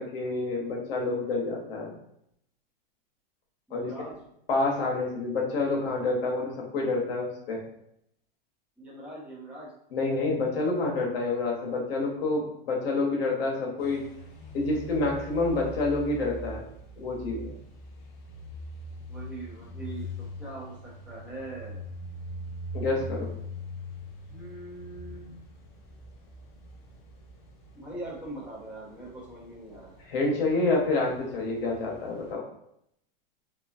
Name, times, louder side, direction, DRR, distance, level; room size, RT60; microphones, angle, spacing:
voice 1, 0.0-1.9 3.7-3.9 4.5-7.6 9.9-14.0 14.5-16.6 17.0-17.5 22.7-23.3 30.0-32.4, left 3 dB, 80° left, -1 dB, 1.0 m, -28 dB
voice 2, 3.7-4.2 8.8-9.7 19.1-21.8 24.3-25.4 27.7-29.9, right 2 dB, 5° right, -9 dB, 0.9 m, -42 dB
sound 1, 13.8-32.3, left 1 dB, 35° left, 0.6 m, -42 dB
3.0 x 2.3 x 2.5 m, 0.74 s
supercardioid pair, 140°, 29 cm